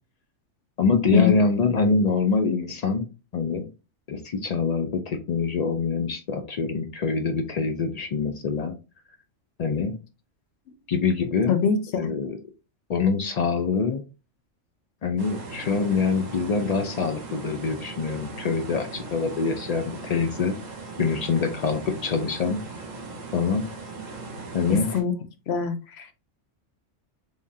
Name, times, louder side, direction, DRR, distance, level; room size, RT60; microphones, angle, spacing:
voice 1, 0.8-3.1 3.3-3.7 4.1-8.7 9.6-10.0 10.9-11.6 12.0-12.4 12.9-14.0 15.0-20.5 21.0-22.6 23.3-23.7 24.5-24.9, left 4 dB, 80° left, 0.3 m, -25 dB
voice 2, 11.5-12.1 24.9-25.1 25.5-26.1, left 7 dB, 65° left, 0.8 m, -23 dB
sound 1, 15.2-25.0, right 3 dB, 40° right, 0.9 m, -38 dB
3.5 x 3.5 x 2.6 m
omnidirectional pair, 1.3 m